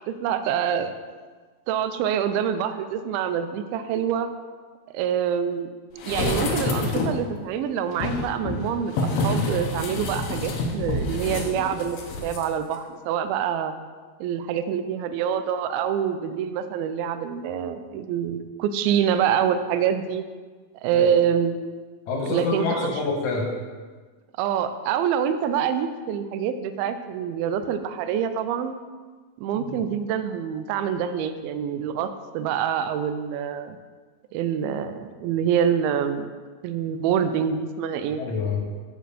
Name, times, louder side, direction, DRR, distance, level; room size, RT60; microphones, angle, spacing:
voice 1, 0.1-1.0 1.7-4.3 4.9-5.7 6.1-13.7 14.2-20.2 20.8-21.6 22.3-22.9 24.4-28.8 29.4-33.8 34.3-36.3 36.6-38.2, right 8 dB, 80° right, 9 dB, 2.4 m, -26 dB
sound 1, 6.0-7.3 7.9-12.4 12.7-12.8, left 2 dB, 90° left, 1.4 m, -27 dB
voice 2, 22.1-23.5 29.6-29.7 38.2-38.6, left 4 dB, 65° left, -1 dB, 2.0 m, -26 dB
7.9 x 4.7 x 6.8 m, 1.4 s
omnidirectional pair, 4.4 m